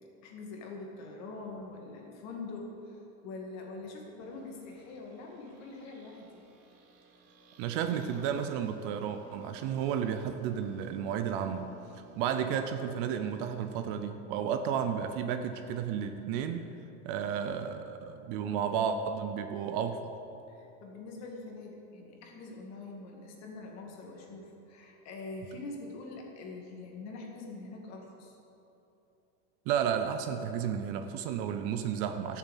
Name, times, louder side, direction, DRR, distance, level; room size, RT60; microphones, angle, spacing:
voice 1, 0.2-6.4 20.5-28.4, left 3 dB, 40° left, 0 dB, 2.1 m, -44 dB
sound 1, 4.2-14.0, right 4 dB, 70° right, 1.8 m, -55 dB
voice 2, 7.6-16.7 17.0-20.1 29.7-32.4, right 8 dB, 45° right, 8 dB, 0.7 m, -32 dB
12.5 x 7.2 x 8.2 m, 2.9 s
supercardioid pair, 160°, 41 cm